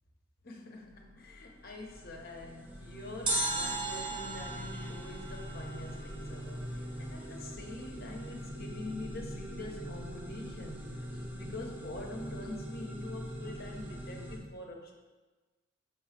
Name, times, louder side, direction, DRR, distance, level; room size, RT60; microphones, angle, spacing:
voice 1, 0.4-14.9, left 2 dB, 50° left, 1 dB, 0.9 m, -45 dB
sound 1, 0.9-14.4, equal, 10° right, 0.7 m, -43 dB
sound 2, 3.3-6.3 6.6-6.7, right 2 dB, 25° right, 1.1 m, -36 dB
6.4 x 3.1 x 5.8 m, 1.3 s
head